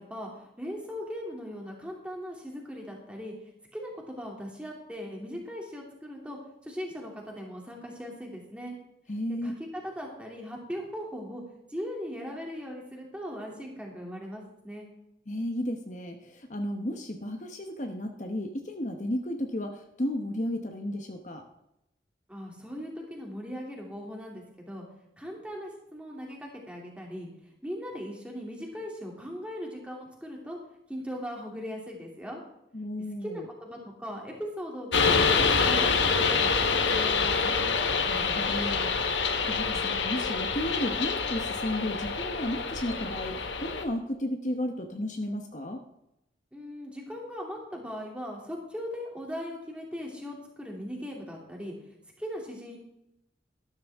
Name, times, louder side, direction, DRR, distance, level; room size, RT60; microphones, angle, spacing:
voice 1, 0.0-3.3 3.7-6.4 6.6-8.8 9.4-9.5 9.8-11.4 11.7-14.9 22.3-24.8 25.2-27.3 27.6-30.6 30.9-32.4 33.2-37.6 46.5-51.7 52.2-52.8, equal, 5° right, -1 dB, 2.8 m, -39 dB
voice 2, 9.1-9.5 15.3-21.4 32.7-33.5 38.1-39.2 39.5-45.8, left 1 dB, 40° left, 4 dB, 1.1 m, -33 dB
sound 1, 34.9-43.8, left 5 dB, 85° left, 1.4 m, -26 dB
13.5 x 12.5 x 3.6 m, 0.82 s
head